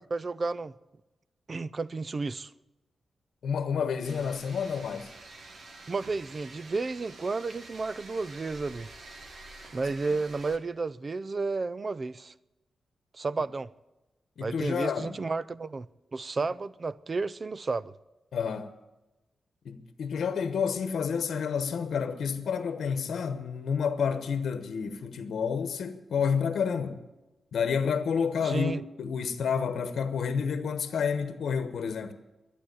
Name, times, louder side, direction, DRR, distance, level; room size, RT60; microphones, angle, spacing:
voice 1, 0.1-0.7 1.5-2.5 5.9-8.9 9.7-12.3 13.1-13.7 14.4-15.9 16.1-17.9 28.4-28.8, right 3 dB, 35° right, 0.4 m, -32 dB
voice 2, 3.4-5.1 14.4-15.2 18.3-18.7 19.6-27.0 27.5-32.1, left 6 dB, 85° left, 1.0 m, -29 dB
sound 1, 4.0-10.6, right 2 dB, 50° right, 1.4 m, -48 dB
11.5 x 10.0 x 9.7 m
wide cardioid pair, 145°, 0 cm